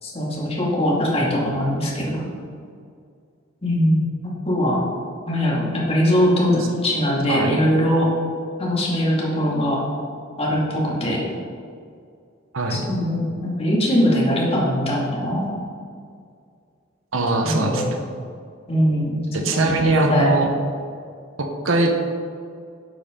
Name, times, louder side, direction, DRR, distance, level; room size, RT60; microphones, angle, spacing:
voice 1, 0.0-2.3 3.6-4.1 4.4-4.8 5.3-8.1 8.6-9.8 10.4-11.2 12.7-15.5 17.4-17.9 18.7-19.3 19.5-20.3, equal, 30° left, -4 dB, 2.4 m, -21 dB
voice 2, 12.5-12.9 17.1-18.0 19.3-20.5 21.4-21.9, right 2 dB, 70° right, 3 dB, 1.1 m, -21 dB
11.0 x 8.4 x 3.8 m, 2.3 s
head